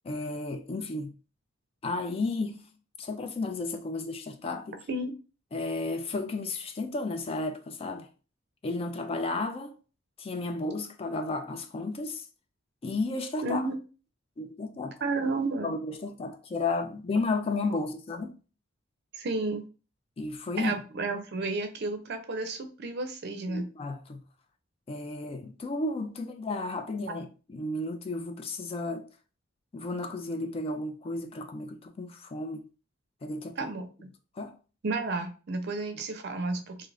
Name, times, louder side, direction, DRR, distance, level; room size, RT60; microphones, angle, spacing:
voice 1, 0.0-1.1 1.8-2.6 3.0-4.8 5.5-8.1 8.6-9.8 10.2-12.3 12.8-13.6 14.4-15.0 15.6-18.4 20.2-20.8 23.5-24.2 24.9-29.1 29.7-32.7 33.2-33.7 34.4-34.5, left 3 dB, 30° left, 0.3 m, -33 dB
voice 2, 13.4-13.8 15.0-15.7 19.1-19.6 20.6-23.7 33.6-34.1 34.8-36.9, right 3 dB, 55° right, 0.5 m, -32 dB
2.7 x 2.4 x 3.2 m
head